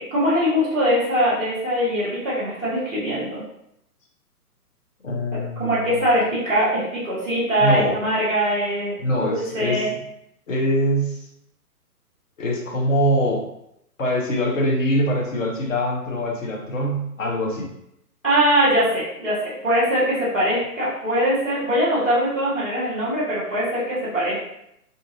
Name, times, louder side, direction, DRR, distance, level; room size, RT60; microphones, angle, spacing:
voice 1, 0.0-3.4 5.3-9.9 18.2-24.4, equal, 10° left, -8 dB, 0.5 m, -22 dB
voice 2, 5.0-5.8 7.6-8.0 9.0-10.0 10.5-11.3 12.4-13.5 14.0-17.7, equal, 55° left, -1 dB, 0.9 m, -23 dB
2.6 x 2.5 x 2.6 m, 0.79 s
figure-of-eight pair, 125°, 47 cm